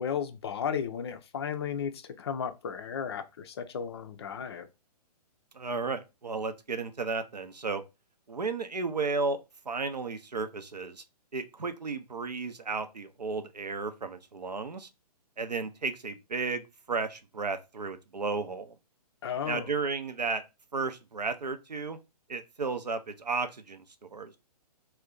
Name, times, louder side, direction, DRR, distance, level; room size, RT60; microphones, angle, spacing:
voice 1, 0.0-4.7 19.2-19.7, left 7 dB, 40° left, 0.4 m, -34 dB
voice 2, 5.5-7.8 8.3-9.4 9.7-11.0 11.3-14.9 15.4-18.8 19.5-20.4 20.7-22.0 22.3-24.4, right 4 dB, 85° right, 0.6 m, -33 dB
2.5 x 2.2 x 3.6 m
figure-of-eight pair, 125°, 21 cm